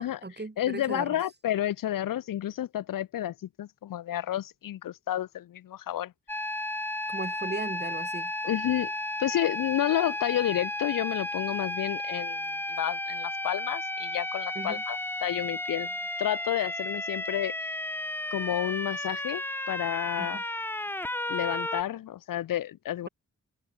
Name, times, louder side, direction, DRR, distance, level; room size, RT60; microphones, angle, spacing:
voice 1, 0.0-1.2 7.1-8.3 14.6-14.8 20.2-20.4, right 3 dB, 30° right, 3.5 m, -37 dB
voice 2, 0.6-6.1 8.4-8.9 9.2-15.9 16.2-17.8 18.3-20.4 21.3-23.1, left 12 dB, 85° left, 0.5 m, -30 dB
sound 1, 6.3-21.8, left 1 dB, 5° left, 0.5 m, -33 dB
cardioid pair, 55°, 32 cm